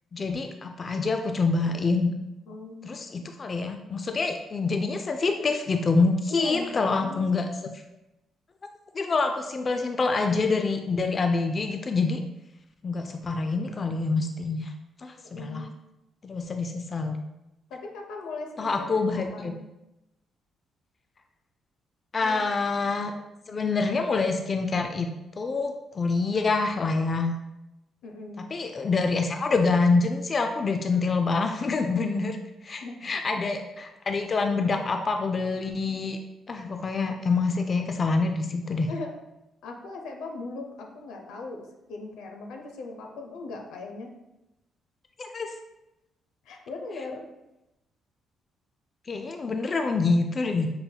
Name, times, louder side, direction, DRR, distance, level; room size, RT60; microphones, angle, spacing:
voice 1, 0.1-2.1 2.8-7.5 8.9-12.2 12.8-14.7 15.0-15.6 16.2-17.2 18.6-19.6 22.1-23.1 23.5-25.1 25.4-27.3 28.5-32.4 32.6-36.2 36.5-38.9 45.2-45.5 49.1-50.7, left 3 dB, 40° left, 5 dB, 0.3 m, -26 dB
voice 2, 2.5-3.2 6.3-7.3 15.2-15.7 17.7-19.6 22.2-22.4 28.0-28.5 32.8-33.1 38.9-39.1 39.6-44.1 46.5-47.2, left 3 dB, 90° left, 2 dB, 0.6 m, -39 dB
5.6 x 2.7 x 2.2 m, 0.94 s
cardioid pair, 90°, 0 cm